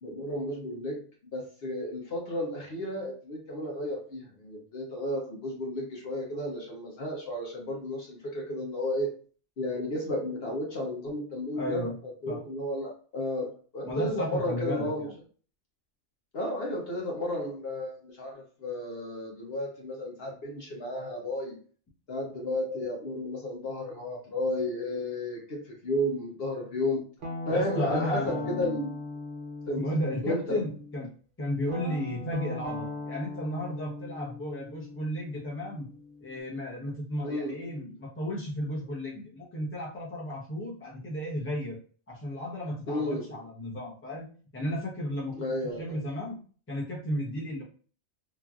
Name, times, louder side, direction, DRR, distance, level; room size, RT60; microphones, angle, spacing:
voice 1, 0.0-9.2 9.6-11.9 12.2-15.1 16.3-21.6 22.1-27.0 27.5-28.9 29.7-29.8 30.2-30.6 37.2-37.7 42.9-43.4 45.3-46.0, left 1 dB, 55° left, -1 dB, 0.9 m, -33 dB
voice 2, 11.5-12.0 12.3-12.4 13.8-15.1 27.5-28.8 29.8-31.1 31.4-35.9 36.2-41.8 42.1-44.3 44.5-45.4 45.8-46.4 46.7-47.6, left 1 dB, 10° left, -4 dB, 0.7 m, -34 dB
Guitar, 27.2-31.0 31.7-36.4, left 2 dB, 50° right, 0.7 m, -39 dB
3.0 x 2.5 x 2.4 m, 0.41 s
omnidirectional pair, 1.3 m